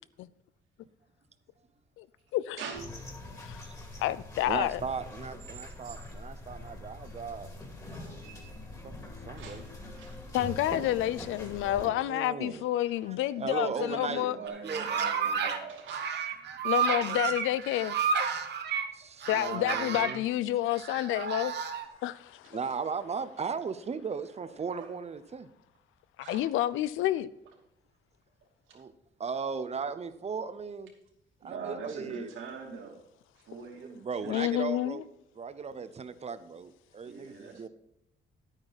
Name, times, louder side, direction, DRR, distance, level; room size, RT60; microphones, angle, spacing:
sound 1, 2.7-11.9, left 2 dB, 15° left, 2.4 m, -44 dB
voice 1, 3.3-3.8 4.5-7.5 8.8-9.6 11.8-12.6 13.1-14.3 14.6-14.9 17.1-17.2 18.9-20.2 22.5-25.5 28.7-28.9 29.2-30.9 31.4-32.3 33.7-35.0 35.4-37.7, right 5 dB, 35° right, 0.8 m, -37 dB
voice 2, 4.0-4.8 10.3-14.4 16.6-18.1 19.2-21.5 22.0-22.6 26.3-27.3 34.3-35.0, left 13 dB, 85° left, 0.5 m, -29 dB
voice 3, 7.9-8.6 9.3-9.7 9.9-10.2 10.7-11.5 13.6-16.1 24.4-24.9 26.2-26.4 31.4-33.0 33.3-34.4 37.0-37.7, right 5 dB, 80° right, 2.9 m, -43 dB
sound 2, 14.5-15.6 15.9-18.9 19.2-20.2 20.7-21.9, right 6 dB, 60° right, 1.2 m, -31 dB
10.0 x 9.0 x 4.1 m
cardioid pair, 90°, 20 cm